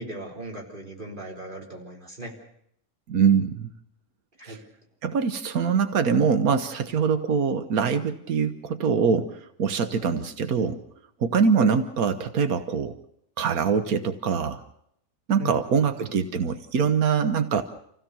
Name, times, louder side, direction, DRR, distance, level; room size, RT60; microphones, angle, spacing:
voice 1, 0.0-2.3 4.4-4.6 11.6-11.7 15.4-15.5 16.0-16.1, right 1 dB, 35° right, 0 dB, 4.5 m, -37 dB
voice 2, 3.1-3.7 4.4-4.6 5.0-10.8 11.2-13.0 13.4-14.6 15.3-17.6, right 6 dB, 90° right, 9 dB, 1.5 m, -23 dB
27.5 x 16.0 x 7.0 m, 0.73 s
omnidirectional pair, 1.5 m